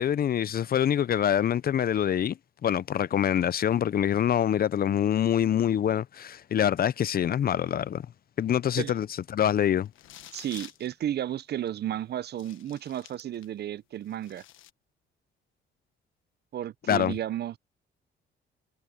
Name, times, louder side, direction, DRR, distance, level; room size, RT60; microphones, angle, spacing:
voice 1, 0.0-2.4 2.6-8.0 8.4-9.1 9.3-9.9 16.9-17.1, left 9 dB, 50° left, 0.6 m, -25 dB
sound 1, 9.9-10.9 11.7-11.8 12.3-13.6 14.0-14.7, left 13 dB, 85° left, 1.3 m, -49 dB
voice 2, 10.3-14.4 16.5-17.6, right 11 dB, 55° right, 0.6 m, -33 dB
cardioid pair, 90°, 20 cm